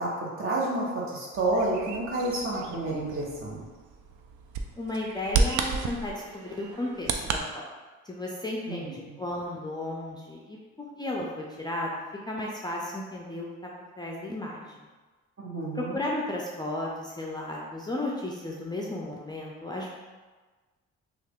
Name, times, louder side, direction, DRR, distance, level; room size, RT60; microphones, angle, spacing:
voice 1, 0.0-3.6 8.7-9.2 15.4-16.0, right 2 dB, 45° right, -4 dB, 1.1 m, -30 dB
Bird vocalization bird call bird song, 1.3-7.4, right 4 dB, 75° right, 0.5 m, -32 dB
voice 2, 4.8-7.7 8.1-10.6 11.0-11.9 12.2-13.7 14.0-14.8 15.7-19.9, left 1 dB, 15° left, -3 dB, 0.4 m, -34 dB
3.2 x 2.4 x 3.5 m, 1.3 s
cardioid pair, 90°, 30 cm